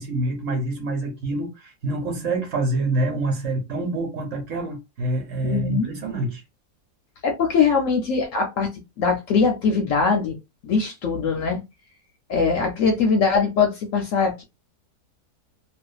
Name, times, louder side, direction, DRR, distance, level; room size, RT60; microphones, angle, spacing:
voice 1, 0.0-6.4, right 2 dB, 60° right, 1.1 m, -26 dB
voice 2, 5.4-5.9 7.2-8.7 9.0-10.4 10.6-11.6 12.3-14.4, left 5 dB, 70° left, 0.8 m, -21 dB
2.5 x 2.3 x 2.3 m
omnidirectional pair, 1.7 m